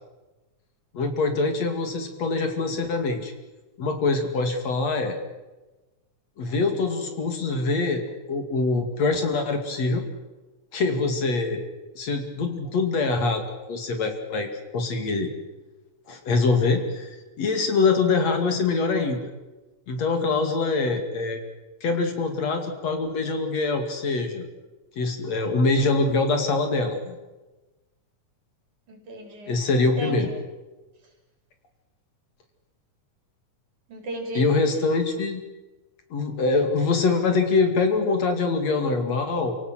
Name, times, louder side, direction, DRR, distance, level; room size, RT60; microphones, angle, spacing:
voice 1, 0.9-3.3 3.8-5.2 6.4-10.1 10.7-11.6 12.0-13.4 13.7-15.3 16.1-17.1 17.4-19.3 19.9-21.4 21.8-24.4 25.0-27.2 29.5-30.3 34.4-35.4 36.1-39.5, left 3 dB, 55° left, 5 dB, 3.5 m, -24 dB
voice 2, 28.9-30.4 33.9-34.5, right 1 dB, 70° right, 2 dB, 5.7 m, -35 dB
29.5 x 17.5 x 7.7 m, 1.1 s
omnidirectional pair, 3.6 m